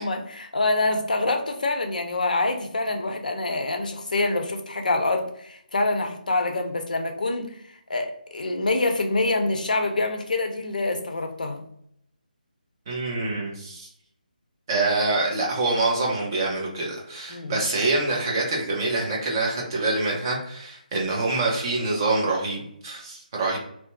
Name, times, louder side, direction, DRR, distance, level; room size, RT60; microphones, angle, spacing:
voice 1, 0.0-7.5 7.9-11.6 17.3-17.6, left 2 dB, 60° left, 4 dB, 0.5 m, -26 dB
voice 2, 12.9-13.9 14.7-23.6, right 2 dB, 25° right, -2 dB, 0.7 m, -25 dB
2.8 x 2.2 x 2.5 m, 0.71 s
figure-of-eight pair, 150°, 5 cm